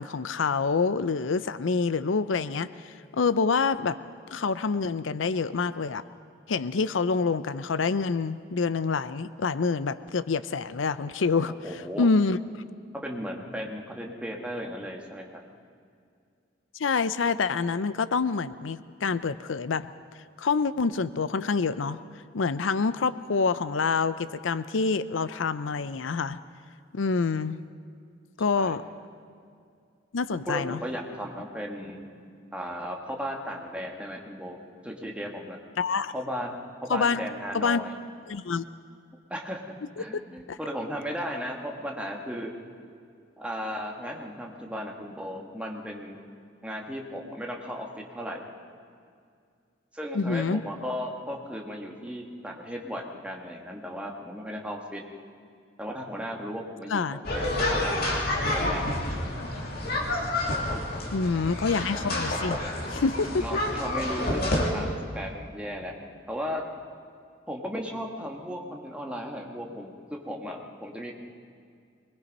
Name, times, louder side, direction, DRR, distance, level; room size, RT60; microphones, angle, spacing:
voice 1, 0.0-4.0 4.3-6.0 6.5-12.4 16.8-19.9 20.4-22.0 22.3-26.4 26.9-27.6 28.4-28.8 30.1-30.8 35.8-36.1 36.9-37.2 37.5-37.8 38.3-38.6 40.0-40.2 40.5-40.6 50.1-50.6 56.9-57.2 61.1-62.6 62.9-63.6, left 4 dB, 90° left, 14 dB, 0.6 m, -27 dB
voice 2, 11.6-12.1 13.0-15.2 28.5-28.8 30.5-32.1 32.5-34.6 34.8-35.6 36.1-38.0 39.3-39.6 40.0-42.5 43.4-46.2 46.6-48.5 49.9-55.0 55.8-58.9 63.4-65.9 66.3-66.6 67.5-71.1, equal, 5° right, 0 dB, 1.8 m, -36 dB
sound 1, 57.2-64.7, left 1 dB, 55° left, 2.8 m, -29 dB
23.5 x 21.0 x 5.4 m, 2.3 s
head